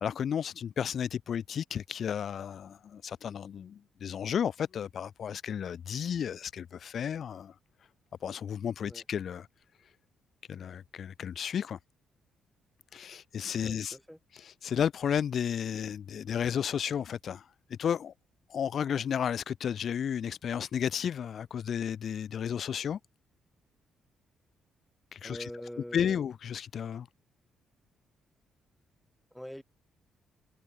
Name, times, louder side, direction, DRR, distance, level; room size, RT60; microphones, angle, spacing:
voice 1, 0.0-7.5 8.2-9.5 10.5-11.8 12.9-14.0 14.3-17.5 17.8-18.1 18.5-23.0 25.1-25.5 25.9-27.1, left 8 dB, 55° left, 0.3 m, -33 dB
voice 2, 13.6-14.2 25.2-26.2 29.3-29.6, equal, ahead, 2.2 m, -44 dB
cardioid pair, 90°, 0 cm